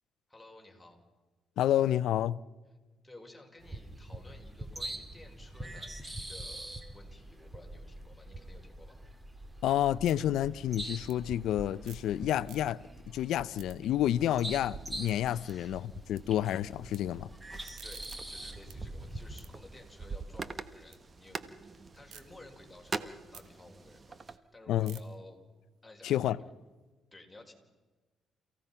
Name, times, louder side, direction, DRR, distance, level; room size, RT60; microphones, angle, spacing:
voice 1, 0.3-1.0 3.0-9.0 15.5-15.7 17.8-25.4 25.8-26.5 27.1-27.5, left 2 dB, 10° left, 5.1 m, -54 dB
voice 2, 1.6-2.4 9.6-12.8 13.1-17.3 24.7-25.0 26.0-26.4, left 12 dB, 80° left, 0.6 m, -29 dB
sound 1, 3.6-19.4, right 1 dB, 15° right, 2.4 m, -44 dB
sound 2, 9.5-12.1 12.4-13.0 13.3-16.2 16.5-17.0 17.4-21.0 21.4-22.2 22.7-26.8, right 9 dB, 80° right, 1.9 m, -58 dB
sound 3, 14.1-24.4, right 4 dB, 35° right, 1.2 m, -45 dB
29.5 x 16.0 x 5.7 m
cardioid pair, 90°, 0 cm